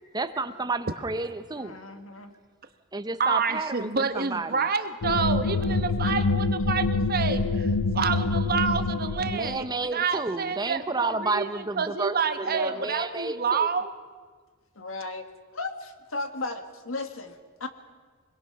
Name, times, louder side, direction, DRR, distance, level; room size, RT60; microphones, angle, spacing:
voice 1, 0.1-1.8 2.9-4.7 9.3-13.7, right 3 dB, 20° right, 10 dB, 0.7 m, -31 dB
voice 2, 1.6-2.3 12.7-13.0 14.8-15.3 15.5-17.7, left 3 dB, 70° left, 7 dB, 1.7 m, -36 dB
voice 3, 3.2-9.6 9.9-13.9, right 5 dB, 45° right, 9 dB, 1.1 m, -28 dB
sound 1, 5.0-9.7, left 3 dB, 85° left, 0.7 m, -26 dB
26.0 x 21.0 x 6.0 m, 1.5 s
head